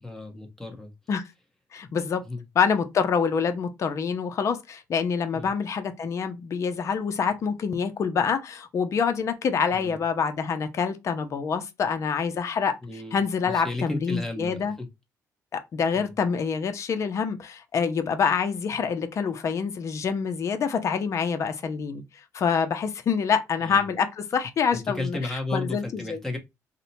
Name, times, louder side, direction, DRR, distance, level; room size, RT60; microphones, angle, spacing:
voice 1, 0.0-0.9 2.3-2.4 5.3-5.5 9.7-10.0 12.8-13.2 13.5-14.9 15.9-16.1 23.6-23.9 24.7-26.4, left 2 dB, 5° left, 1.0 m, -34 dB
voice 2, 1.7-2.2 2.6-12.8 13.1-14.7 15.5-22.0 22.3-26.2, left 6 dB, 50° left, 0.6 m, -26 dB
2.7 x 2.2 x 4.0 m
cardioid pair, 105°, 7 cm